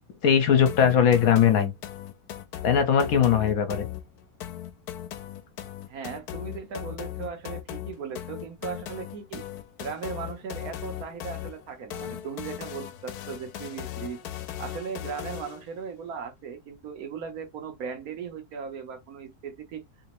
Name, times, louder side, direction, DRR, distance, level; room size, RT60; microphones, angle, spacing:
voice 1, 0.2-1.7 2.6-3.9, left 8 dB, 70° left, 1.2 m, -20 dB
sound 1, 0.7-15.7, left 12 dB, 85° left, 1.1 m, -38 dB
voice 2, 5.9-9.5 9.8-14.2 14.6-19.8, right 6 dB, 70° right, 1.3 m, -37 dB
3.4 x 2.9 x 2.9 m
omnidirectional pair, 1.6 m